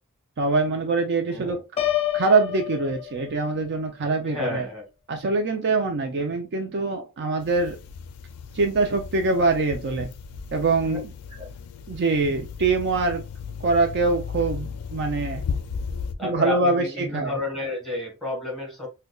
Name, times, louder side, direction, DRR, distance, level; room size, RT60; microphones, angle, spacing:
voice 1, 0.4-1.6 2.1-4.7 5.1-7.8 8.5-10.1 10.5-11.1 11.9-13.2 13.6-15.4 16.2-17.3, right 3 dB, 50° right, 0.4 m, -24 dB
Piano, 1.8-3.7, left 12 dB, 25° left, 0.5 m, -28 dB
voice 2, 4.2-4.9 10.9-11.0 11.3-11.5 16.2-18.9, left 2 dB, ahead, 1.5 m, -31 dB
sound 1, 7.4-16.1, left 5 dB, 85° left, 0.4 m, -35 dB
5.0 x 2.2 x 2.3 m
head